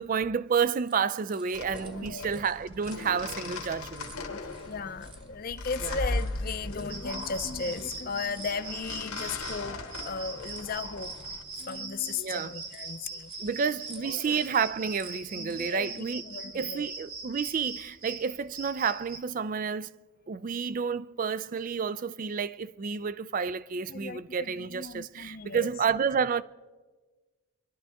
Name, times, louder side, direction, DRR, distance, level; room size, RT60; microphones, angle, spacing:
voice 1, 0.0-4.2 5.8-5.9 12.2-12.5 13.4-16.2 16.5-19.9 20.3-26.4, right 6 dB, 40° right, 0.3 m, -30 dB
sound 1, 0.8-16.0, right 4 dB, 25° right, 1.0 m, -55 dB
sound 2, 1.5-11.4, left 2 dB, 85° left, 1.7 m, -38 dB
voice 2, 2.0-2.4 4.3-11.1 11.6-13.3 14.0-14.5 15.3-16.9 23.9-25.7, left 5 dB, 40° left, 0.6 m, -36 dB
sound 3, 6.9-19.2, right 3 dB, 85° right, 1.8 m, -42 dB
24.0 x 11.5 x 3.5 m
head